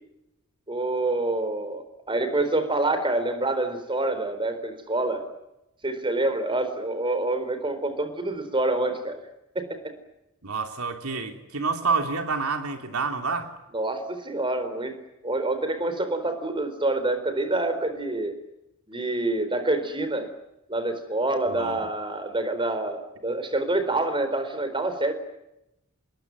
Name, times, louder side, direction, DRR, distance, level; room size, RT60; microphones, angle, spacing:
voice 1, 0.7-5.2 5.8-9.2 9.5-9.9 13.7-15.0 15.2-18.3 18.9-20.3 20.7-25.1, right 2 dB, 25° right, 10 dB, 4.2 m, -27 dB
voice 2, 10.4-13.5 21.5-21.8, right 4 dB, 90° right, 5 dB, 3.2 m, -28 dB
28.0 x 21.5 x 9.5 m, 0.89 s
head